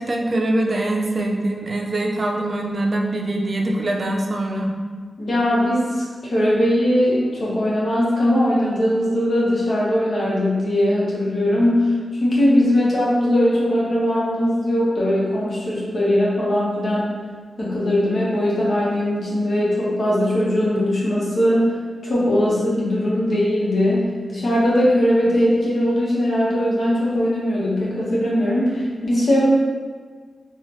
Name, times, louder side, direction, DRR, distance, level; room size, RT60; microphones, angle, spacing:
voice 1, 0.0-4.7, right 1 dB, 45° right, 1 dB, 0.4 m, -23 dB
voice 2, 5.2-17.2 17.6-21.7 22.0-29.5, left 1 dB, 65° left, -6 dB, 1.0 m, -20 dB
3.7 x 2.3 x 3.0 m, 1.5 s
cardioid pair, 70°, 0 cm